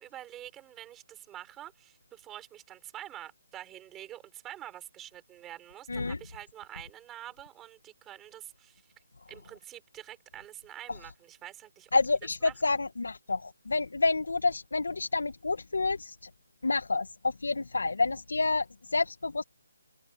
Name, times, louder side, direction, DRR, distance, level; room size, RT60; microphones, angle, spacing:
voice 1, 0.0-8.8 9.3-11.9 12.4-12.8, right 12 dB, 10° right, 5.2 m, -47 dB
voice 2, 11.9-16.3 16.6-19.4, left 3 dB, 85° left, 1.7 m, -29 dB
hypercardioid pair, 170°, 0 cm